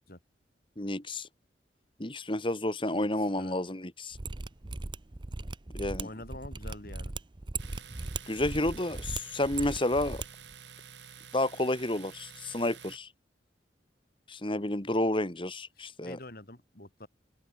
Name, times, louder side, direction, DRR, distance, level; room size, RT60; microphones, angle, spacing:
voice 1, 0.8-1.3 2.0-4.2 5.7-6.1 8.3-10.2 11.3-13.1 14.3-16.2, left 1 dB, 30° left, 2.1 m, -30 dB
voice 2, 2.9-3.6 6.0-7.1 15.8-17.1, left 1 dB, 55° left, 4.2 m, -46 dB
Mechanisms, 4.1-10.3 10.5-10.6, right 3 dB, 25° right, 0.7 m, -38 dB
Domestic sounds home sounds, 7.6-13.0, right 7 dB, 80° right, 7.2 m, -50 dB
open air
head